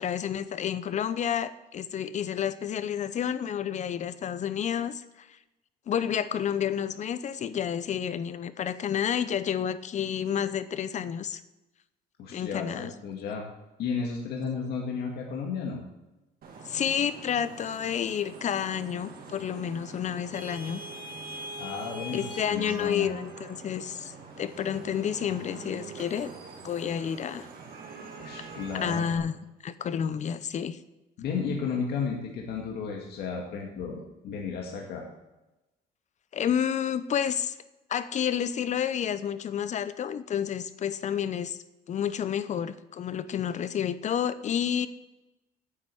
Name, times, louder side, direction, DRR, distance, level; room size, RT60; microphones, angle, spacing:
voice 1, 0.0-5.3 5.9-11.4 12.3-12.9 16.6-20.8 22.1-26.3 26.6-27.5 28.7-29.3 29.6-30.8 36.3-37.6 37.9-41.6 41.9-44.9, left 8 dB, 45° left, 14 dB, 0.7 m, -30 dB
voice 2, 12.2-13.4 13.8-15.8 21.6-23.1 28.2-29.1 31.2-35.0, left 5 dB, 70° left, 0 dB, 2.0 m, -33 dB
Vehicle horn car horn honking / Traffic noise roadway noise, 16.4-29.2, right 3 dB, 60° right, 2.3 m, -43 dB
9.6 x 8.0 x 7.0 m, 1.0 s
cardioid pair, 110°, 17 cm